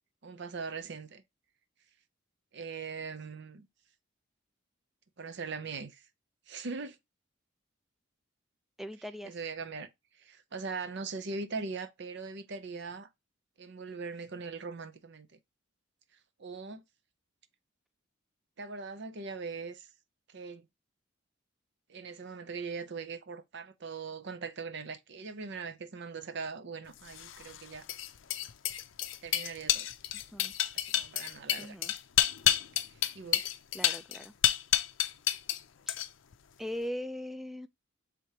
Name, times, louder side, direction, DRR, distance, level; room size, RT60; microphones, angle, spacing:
voice 1, 0.2-1.2 2.5-3.7 5.2-6.0 6.5-7.0 9.2-9.9 10.2-13.1 13.6-15.3 16.4-16.8 18.6-19.9 20.3-20.7 21.9-27.9 29.2-29.9 30.9-31.8 33.1-33.5, right 4 dB, 60° right, 0.7 m, -40 dB
voice 2, 8.8-9.4 30.3-30.5 31.6-31.9 33.7-34.3 35.9-36.0 36.6-37.7, equal, ahead, 0.4 m, -39 dB
sound 1, 27.1-35.6 35.9-36.3, left 12 dB, 70° left, 0.5 m, -30 dB
4.8 x 3.4 x 2.9 m
head